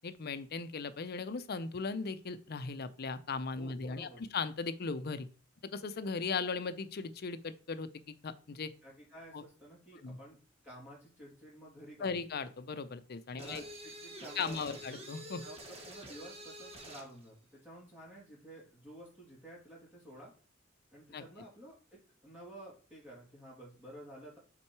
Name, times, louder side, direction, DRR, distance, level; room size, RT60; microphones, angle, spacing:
voice 1, 0.0-5.3 5.7-8.7 9.3-9.4 10.0-10.2 12.0-13.6 14.4-15.4 21.1-21.2, left 4 dB, 55° left, 13 dB, 0.6 m, -38 dB
voice 2, 3.6-4.3 8.8-10.4 10.6-12.2 13.3-14.8 15.4-20.3 20.9-24.4, right 1 dB, 10° right, -6 dB, 2.9 m, -52 dB
sound 1, 13.4-17.1, right 1 dB, 30° right, 1.5 m, -48 dB
5.9 x 4.5 x 4.6 m, 0.38 s
head